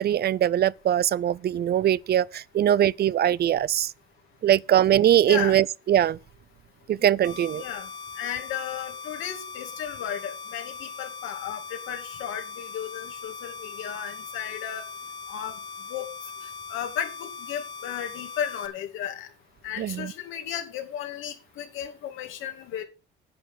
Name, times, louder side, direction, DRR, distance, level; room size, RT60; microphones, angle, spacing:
voice 1, 0.0-3.9 4.4-6.2 6.9-7.6 19.8-20.1, right 11 dB, 55° right, 0.5 m, -22 dB
voice 2, 5.3-5.6 7.6-7.9 8.2-14.8 15.3-15.5 15.9-16.1 16.7-19.3 19.6-22.8, left 9 dB, 90° left, 2.6 m, -34 dB
sound 1, 7.2-18.7, left 5 dB, 70° left, 3.4 m, -40 dB
10.5 x 8.6 x 5.8 m
cardioid pair, 85°, 20 cm